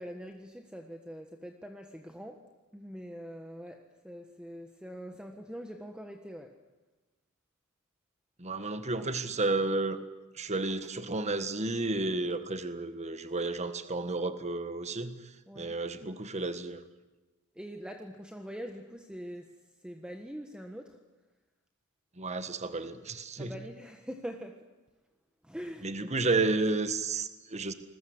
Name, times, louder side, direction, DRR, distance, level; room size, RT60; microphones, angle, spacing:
voice 1, 0.0-2.5 2.7-6.6 15.5-15.7 17.5-19.5 19.8-21.0 23.4-24.7 25.4-26.1, equal, 5° right, 4 dB, 1.4 m, -43 dB
voice 2, 8.4-10.0 10.3-16.8 22.2-23.5 25.8-27.7, right 3 dB, 30° right, 10 dB, 1.6 m, -32 dB
28.5 x 21.0 x 8.0 m, 1.2 s
head